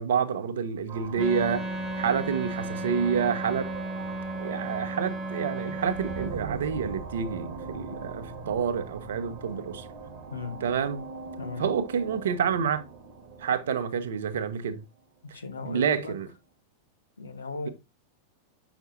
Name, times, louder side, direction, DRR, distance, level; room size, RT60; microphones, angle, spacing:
voice 1, 0.0-1.7 2.0-3.7 4.4-9.9 10.6-11.1 11.6-12.8 13.4-14.8 15.6-16.3, right 7 dB, 60° right, 1.0 m, -28 dB
sound 1, 0.9-15.0, right 4 dB, 40° right, 1.4 m, -41 dB
Wind instrument woodwind instrument, 1.1-6.4, right 1 dB, 10° right, 1.5 m, -34 dB
voice 2, 10.3-10.6 11.4-11.6 15.3-16.1 17.2-17.7, left 3 dB, 75° left, 1.5 m, -36 dB
8.0 x 6.1 x 2.8 m
figure-of-eight pair, 90°, 0 cm